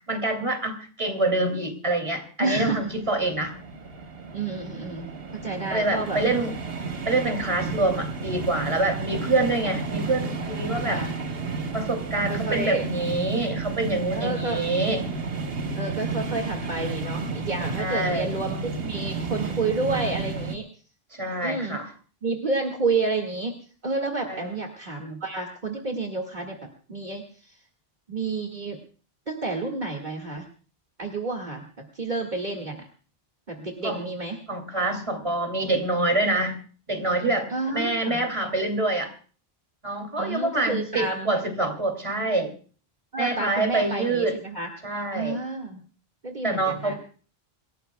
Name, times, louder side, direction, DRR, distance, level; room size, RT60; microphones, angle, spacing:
voice 1, 0.1-3.6 5.7-6.5 7.1-11.0 11.7-15.1 17.8-18.3 21.1-21.9 24.3-24.5 33.8-34.1 34.5-36.6 36.9-39.1 39.8-42.5 43.2-44.4 44.8-45.4 46.4-47.0, right 2 dB, 30° right, 4 dB, 2.8 m, -26 dB
voice 2, 2.4-2.8 4.3-6.2 7.6-7.8 9.7-9.8 10.8-11.1 12.3-12.8 14.1-14.6 15.8-20.7 21.4-21.8 22.2-23.6 23.8-27.6 28.1-28.8 29.3-30.5 31.0-31.6 31.9-32.9 33.5-34.4 37.5-38.2 40.2-41.3 43.1-44.7 45.1-45.8 46.2-47.0, right 3 dB, 45° right, 0 dB, 2.1 m, -30 dB
sound 1, 2.8-20.6, right 4 dB, 70° right, 1.4 m, -32 dB
27.0 x 17.5 x 2.3 m, 0.40 s
omnidirectional pair, 1.0 m